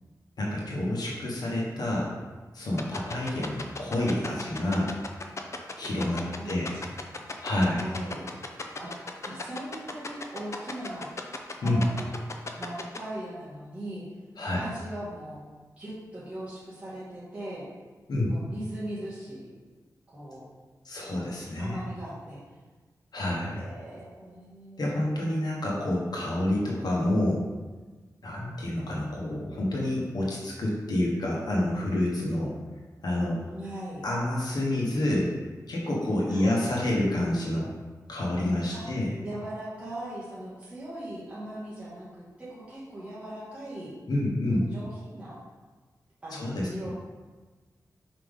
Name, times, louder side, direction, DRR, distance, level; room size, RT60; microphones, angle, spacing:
voice 1, 0.4-2.1 2.5-4.9 5.8-6.8 7.4-7.9 11.6-11.8 14.4-14.6 18.1-18.3 20.8-21.8 23.1-23.6 24.8-27.4 28.2-32.5 33.0-33.4 34.0-35.3 35.7-37.7 38.1-39.1 44.1-44.7 46.3-46.9, left 1 dB, 75° left, -3 dB, 1.3 m, -28 dB
sound 1, 2.8-13.0, left 3 dB, 45° left, 0.6 m, -35 dB
voice 2, 6.0-6.8 7.6-8.3 8.8-8.9 9.3-11.1 11.6-12.2 12.6-14.0 14.5-15.4 15.8-17.6 18.3-19.5 20.1-20.4 21.1-22.4 23.5-24.9 33.5-34.0 36.3-36.6 38.7-38.8 39.2-43.9 44.5-45.4 46.2-46.9, right 1 dB, 20° right, -11 dB, 1.9 m, -40 dB
5.6 x 5.0 x 3.6 m, 1.3 s
wide cardioid pair, 115°, 7 cm